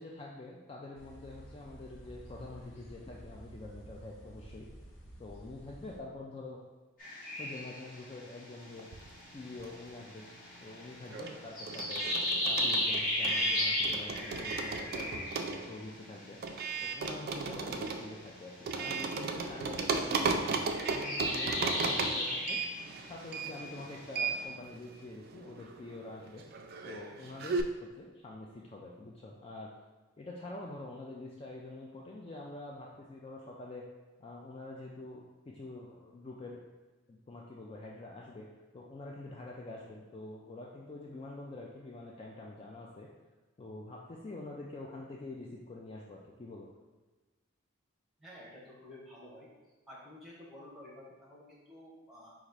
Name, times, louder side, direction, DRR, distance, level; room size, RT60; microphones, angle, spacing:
voice 1, 0.0-4.7 5.2-6.6 7.4-8.9 9.3-10.3 10.6-12.0 12.4-16.4 16.8-20.5 20.8-22.6 23.0-26.4 26.8-29.7 30.2-33.8 34.2-36.6 37.1-38.5 38.7-43.1 43.6-46.7, left 2 dB, 30° left, -2 dB, 0.3 m, -46 dB
sound 1, 0.9-6.0, right 1 dB, 75° left, 0.9 m, -51 dB
sound 2, 7.0-19.0 19.3-23.7 23.9-24.3, left 1 dB, 45° left, 1.4 m, -35 dB
sound 3, 8.8-10.1 10.3-27.6, right 4 dB, 50° right, 0.3 m, -36 dB
voice 2, 48.2-49.5 49.9-52.3, left 1 dB, ahead, -6 dB, 1.0 m, -51 dB
4.1 x 2.4 x 4.7 m, 1.2 s
head